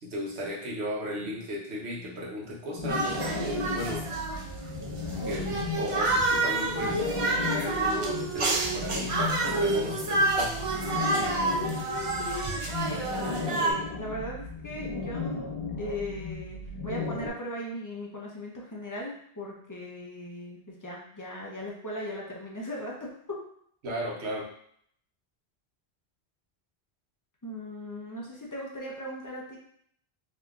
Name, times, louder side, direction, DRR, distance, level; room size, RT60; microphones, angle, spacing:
voice 1, 0.0-3.2 3.4-4.1 5.2-10.6 23.8-24.5, equal, 85° right, -2 dB, 1.1 m, -35 dB
sound 1, 2.8-17.3, left 3 dB, 65° left, 1.3 m, -35 dB
sound 2, 2.9-13.7, right 2 dB, 45° right, 0.4 m, -29 dB
voice 2, 5.2-5.7 10.8-15.4 15.8-23.4 27.4-29.6, left 1 dB, 20° left, -3 dB, 0.6 m, -38 dB
3.7 x 2.7 x 2.3 m, 0.65 s
omnidirectional pair, 1.1 m